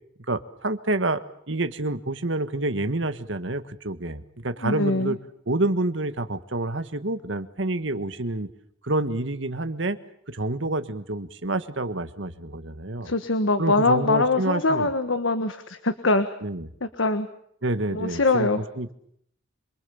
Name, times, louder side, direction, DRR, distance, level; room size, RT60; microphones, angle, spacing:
voice 1, 0.3-1.2 1.5-5.2 5.5-8.5 8.8-10.0 10.3-13.1 13.6-14.9 16.4-16.7 17.6-18.5 18.8-18.9, right 2 dB, 65° right, 10 dB, 1.6 m, -28 dB
voice 2, 4.6-5.2 13.0-16.3 17.0-17.3 17.9-18.6, left 3 dB, 75° left, 10 dB, 1.5 m, -23 dB
26.5 x 24.0 x 7.1 m, 0.71 s
head